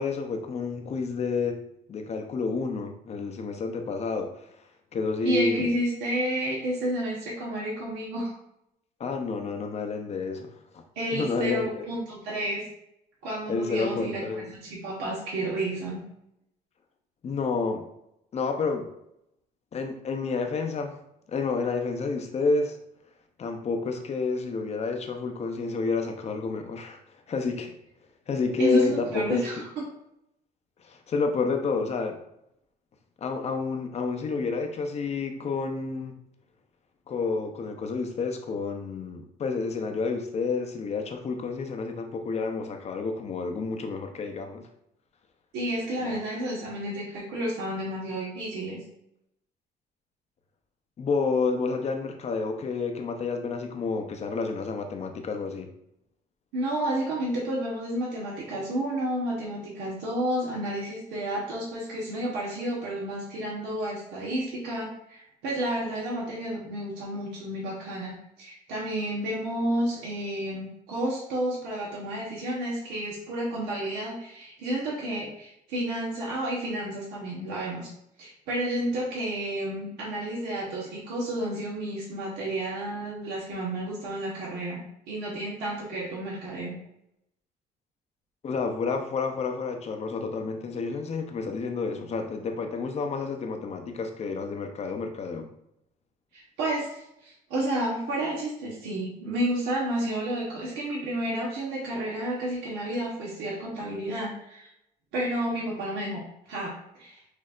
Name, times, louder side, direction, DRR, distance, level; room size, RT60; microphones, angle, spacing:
voice 1, 0.0-1.6 1.9-4.4 4.9-5.6 9.0-10.8 11.1-11.8 13.5-14.5 17.2-17.9 18.3-18.9 19.7-21.0 21.3-22.8 23.4-27.0 27.3-27.7 28.3-29.4 30.8-32.2 33.2-36.2 37.1-44.7 46.0-46.2 51.0-55.7 88.4-95.5, left 4 dB, 40° left, 5 dB, 0.7 m, -29 dB
voice 2, 5.2-8.3 10.9-12.6 13.2-16.0 28.6-29.7 45.5-48.8 56.5-77.9 78.2-86.7 96.3-104.7 105.1-106.2 106.5-107.2, right 1 dB, 85° right, -6 dB, 1.3 m, -31 dB
6.4 x 2.7 x 2.5 m, 0.80 s
cardioid pair, 110°, 17 cm